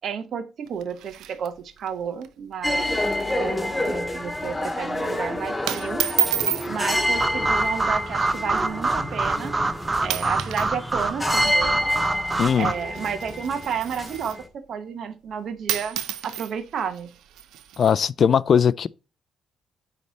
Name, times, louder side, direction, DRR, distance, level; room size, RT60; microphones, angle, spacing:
voice 1, 0.0-2.9 3.3-6.0 6.7-9.5 10.0-11.8 12.6-16.0 16.2-17.1, right 7 dB, 65° right, 1.1 m, -31 dB
sound 1, 0.6-1.9 2.2-2.3 2.6-2.9 3.2-3.5 3.9-4.2 4.9-5.2 5.7-6.7 7.7-8.0 8.7-8.8 9.5-9.7 10.0-10.7 11.0-14.5 15.3-15.4 15.7-18.0, right 12 dB, 85° right, 0.5 m, -31 dB
sound 2, 2.6-14.4, left 1 dB, 10° left, 2.0 m, -28 dB
sound 3, 7.2-12.7, right 3 dB, 25° right, 0.8 m, -26 dB
voice 2, 12.4-12.7 17.8-18.9, left 7 dB, 55° left, 0.3 m, -19 dB
9.5 x 3.3 x 4.0 m
cardioid pair, 90°, 0 cm